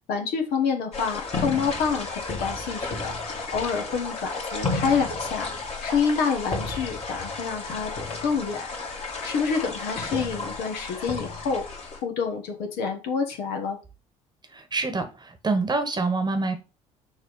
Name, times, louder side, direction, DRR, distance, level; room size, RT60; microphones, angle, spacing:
voice 1, 0.1-5.5 5.8-8.7 8.9-13.8, left 6 dB, 60° left, 4 dB, 1.5 m, -28 dB
sound 1, 0.9-12.0, left 3 dB, 35° left, 2.1 m, -33 dB
voice 2, 14.5-16.5, right 3 dB, 25° right, 7 dB, 1.3 m, -26 dB
6.4 x 3.1 x 5.4 m, 0.31 s
figure-of-eight pair, 55°, 18 cm